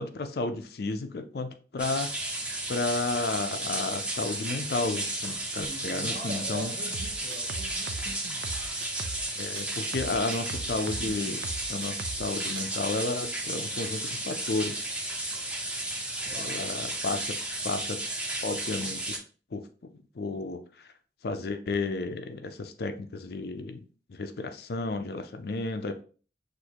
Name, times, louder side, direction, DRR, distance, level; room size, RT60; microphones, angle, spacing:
voice 1, 0.0-2.1 2.7-6.7 9.4-11.4 11.7-15.0 16.4-17.4 17.6-18.0 18.4-19.2 19.5-19.6 20.2-20.9 21.2-23.8 24.1-26.0, left 3 dB, 55° left, 8 dB, 0.5 m, -32 dB
sound 1, 1.8-19.2, right 1 dB, 5° right, 0.7 m, -33 dB
voice 2, 5.4-8.2 16.2-16.8, right 2 dB, 40° right, -2 dB, 1.6 m, -42 dB
sound 2, 6.9-9.3 9.6-12.3 12.6-12.8, right 4 dB, 65° right, 0.4 m, -39 dB
6.4 x 2.6 x 2.8 m, 0.39 s
head